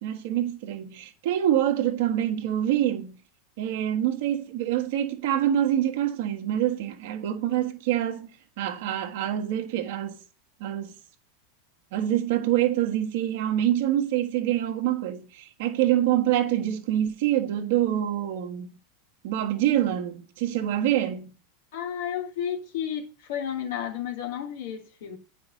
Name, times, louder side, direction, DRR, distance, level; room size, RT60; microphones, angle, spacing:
voice 1, 0.0-3.2 3.6-10.2 10.6-10.9 11.9-18.7 19.2-21.3, right 12 dB, 60° right, 1.6 m, -26 dB
voice 2, 21.7-25.2, left 9 dB, 65° left, 2.6 m, -32 dB
9.5 x 5.6 x 5.4 m
figure-of-eight pair, 90°, 0 cm